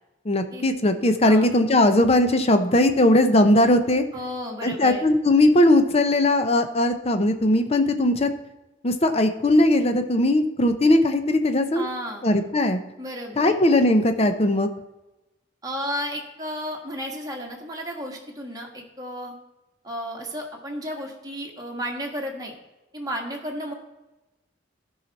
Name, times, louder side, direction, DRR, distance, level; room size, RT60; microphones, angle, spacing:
voice 1, 0.3-4.0 4.6-8.3 8.8-11.9 12.2-12.8 13.4-14.7, left 1 dB, 30° left, 8 dB, 0.7 m, -19 dB
voice 2, 4.1-5.0 11.7-12.3 13.0-13.6 15.6-19.3 19.8-22.5 22.9-23.7, equal, 20° right, 0 dB, 1.6 m, -33 dB
13.5 x 5.7 x 4.1 m, 1.0 s
head